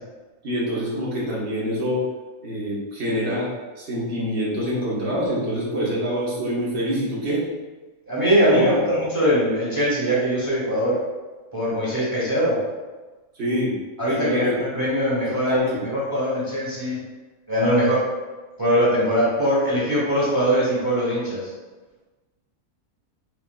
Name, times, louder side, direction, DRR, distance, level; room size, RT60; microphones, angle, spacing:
voice 1, 0.4-2.0 2.4-3.5 3.8-7.4 8.5-8.8 13.4-13.7 14.2-14.5 15.3-15.8, equal, 45° right, -6 dB, 1.4 m, -25 dB
voice 2, 8.1-11.0 11.5-12.6 14.0-17.0 17.5-18.0 18.6-21.4, equal, 15° right, -8 dB, 1.3 m, -21 dB
6.2 x 2.8 x 2.2 m, 1.2 s
omnidirectional pair, 1.6 m